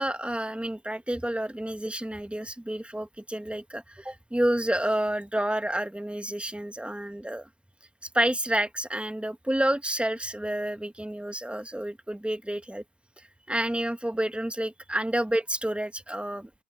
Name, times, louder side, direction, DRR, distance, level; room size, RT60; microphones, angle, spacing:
voice 1, 0.0-7.5 8.0-12.8 13.5-16.5, right 1 dB, 5° right, 1.5 m, -29 dB
open air
supercardioid pair, 110°, 38 cm